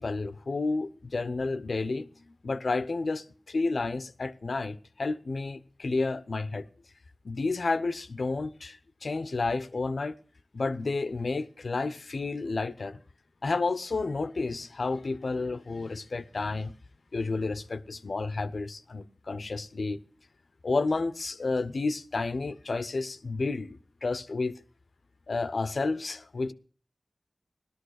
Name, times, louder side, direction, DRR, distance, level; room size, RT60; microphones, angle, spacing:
voice 1, 0.0-2.1 2.4-6.7 7.2-10.1 10.5-13.0 13.4-16.7 17.1-20.0 20.6-24.5 25.3-26.5, left 3 dB, 85° left, 0.9 m, -31 dB
17.5 x 12.5 x 6.5 m
wide cardioid pair, 60°, 0 cm